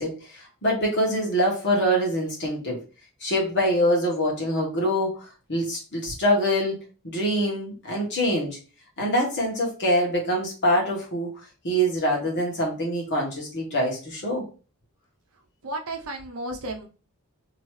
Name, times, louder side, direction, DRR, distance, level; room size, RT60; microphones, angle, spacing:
voice 1, 0.0-2.8 3.2-8.6 9.0-11.3 11.6-14.4, equal, 55° left, -1 dB, 1.4 m, -25 dB
voice 2, 15.6-16.9, right 1 dB, 65° right, 3 dB, 0.7 m, -33 dB
3.0 x 2.8 x 3.1 m, 0.35 s
head